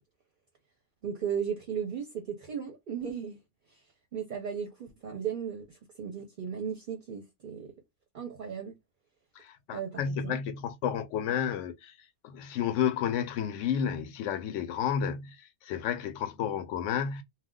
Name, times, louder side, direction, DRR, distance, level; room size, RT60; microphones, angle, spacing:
voice 1, 1.0-3.4 3.7-3.8 4.1-7.7 8.1-8.8 9.7-10.4, right 7 dB, 50° right, 0.7 m, -36 dB
voice 2, 9.4-11.9 12.2-17.2, left 8 dB, 75° left, 0.9 m, -31 dB
2.4 x 2.3 x 3.6 m
omnidirectional pair, 1.3 m